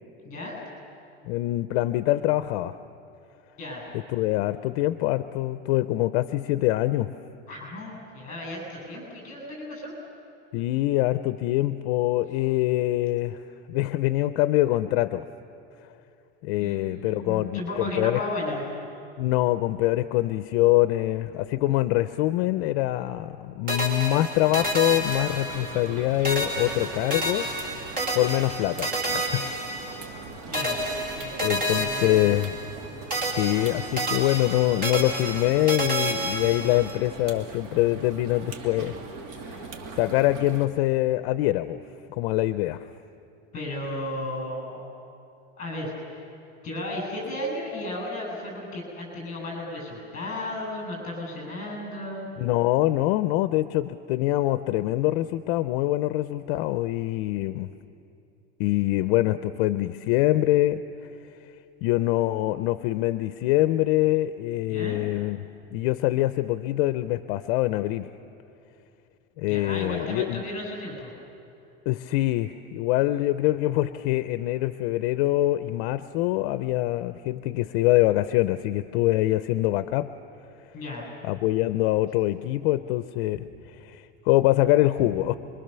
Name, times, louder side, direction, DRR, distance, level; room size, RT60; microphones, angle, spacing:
voice 1, 0.2-0.6 3.6-3.9 7.5-9.9 16.6-18.6 30.5-32.4 43.5-44.8 45.6-46.2 46.6-52.3 64.7-65.0 69.5-71.1 80.7-81.1, left 1 dB, 25° left, 0 dB, 7.6 m, -34 dB
voice 2, 1.3-2.8 3.9-7.1 10.5-15.2 15.8-15.9 16.4-18.2 19.2-29.5 31.4-32.5 33.3-38.9 39.3-39.7 39.9-41.8 42.1-42.9 52.4-57.7 58.6-61.1 61.4-61.5 61.8-65.4 65.7-68.1 69.4-70.4 71.9-80.1 81.2-85.4, left 16 dB, 60° left, 12 dB, 0.6 m, -24 dB
sound 1, 23.7-26.0 26.2-30.2 30.5-32.8 33.1-37.0, right 1 dB, 25° right, 2.6 m, -30 dB
sound 2, 24.4-40.7, right 4 dB, 75° right, 2.5 m, -41 dB
26.5 x 23.0 x 6.8 m, 2.7 s
cardioid pair, 165°, 32 cm